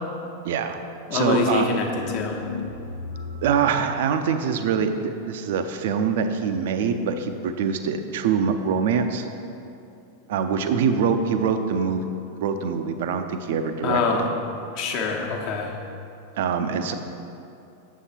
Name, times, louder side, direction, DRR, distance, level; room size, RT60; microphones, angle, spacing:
voice 1, 0.4-0.8 1.1-1.7 3.4-9.3 10.3-12.0 12.4-14.3 16.4-16.9, right 6 dB, 55° right, 7 dB, 0.6 m, -24 dB
voice 2, 1.1-2.4 13.8-14.3 14.7-15.7, left 4 dB, 45° left, 1 dB, 1.1 m, -24 dB
sound 1, 1.9-3.7, left 4 dB, 80° left, 0.7 m, -34 dB
8.2 x 7.2 x 4.4 m, 2.7 s
figure-of-eight pair, 90°, 0 cm